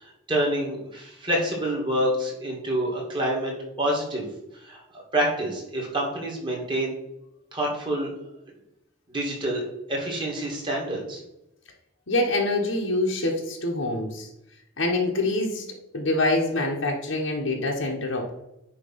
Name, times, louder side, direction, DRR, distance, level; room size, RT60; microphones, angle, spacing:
voice 1, 0.3-3.5 3.8-4.3 4.6-4.8 5.1-6.9 7.5-8.1 9.1-11.2, right 1 dB, 25° right, -2 dB, 2.3 m, -27 dB
voice 2, 12.1-14.3 14.8-15.7 15.9-18.3, left 2 dB, 75° left, -1 dB, 1.4 m, -25 dB
9.7 x 3.3 x 5.7 m, 0.85 s
head